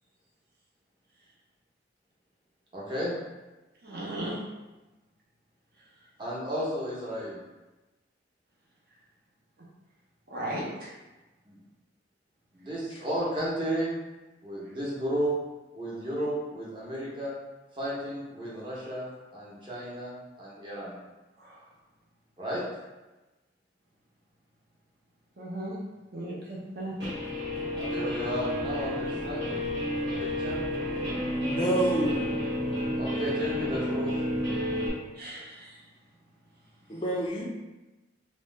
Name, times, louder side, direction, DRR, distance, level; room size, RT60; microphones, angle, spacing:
voice 1, 2.7-3.1 6.2-7.4 11.5-11.6 12.5-14.0 14.4-15.3 15.7-17.3 17.8-21.0 22.4-22.6 27.8-29.6 30.1-30.6 32.9-34.1, equal, 25° right, -7 dB, 0.8 m, -33 dB
voice 2, 3.8-4.3 10.3-10.9 21.4-21.5 25.4-25.7 26.1-26.9 35.2-35.8, right 1 dB, 55° right, -5 dB, 0.7 m, -36 dB
Guitar, 27.0-34.9, equal, 70° right, 1.3 m, -30 dB
voice 3, 31.3-32.3 36.9-37.4, right 1 dB, 30° left, -3 dB, 0.4 m, -28 dB
2.8 x 2.1 x 3.2 m, 1.1 s
head